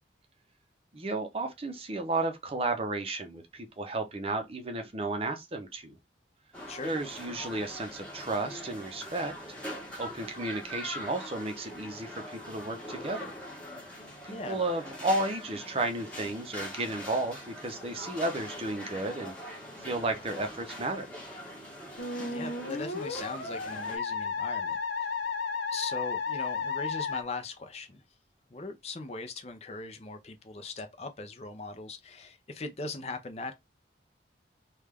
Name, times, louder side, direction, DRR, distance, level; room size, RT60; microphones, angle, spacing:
voice 1, 0.9-6.0 6.8-9.3 10.0-13.3 14.2-19.3 19.8-21.1, right 2 dB, 30° right, 0.6 m, -33 dB
sound 1, 6.5-24.0, left 1 dB, 5° left, 1.0 m, -43 dB
voice 2, 14.3-14.6 22.3-25.1 25.7-28.0 28.5-33.5, left 3 dB, 35° left, 0.5 m, -40 dB
Musical instrument, 22.0-27.2, left 5 dB, 75° left, 0.9 m, -33 dB
3.2 x 2.3 x 3.4 m
head